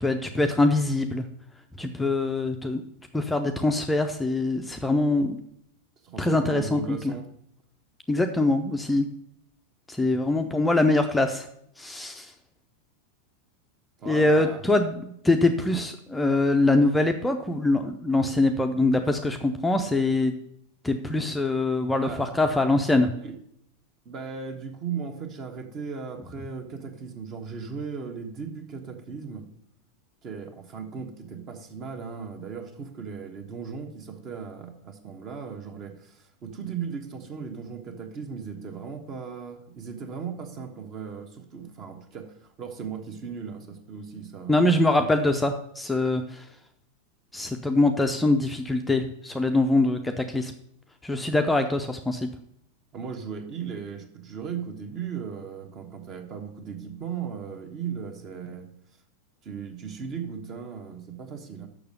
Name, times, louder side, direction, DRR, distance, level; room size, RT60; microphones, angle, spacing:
voice 1, 0.0-1.3 1.8-2.8 3.1-5.4 6.2-7.1 8.1-9.1 9.9-11.5 11.8-12.3 14.1-20.3 20.8-23.1 44.5-46.5 47.3-50.5 51.0-52.3, left 2 dB, 5° left, 5 dB, 0.6 m, -23 dB
voice 2, 6.0-7.3 14.0-14.7 22.0-22.3 23.2-23.4 24.0-29.5 30.2-45.1 52.9-58.7 59.4-61.7, right 6 dB, 35° right, 5 dB, 1.3 m, -37 dB
6.8 x 6.2 x 6.6 m, 0.73 s
figure-of-eight pair, 90°, 0 cm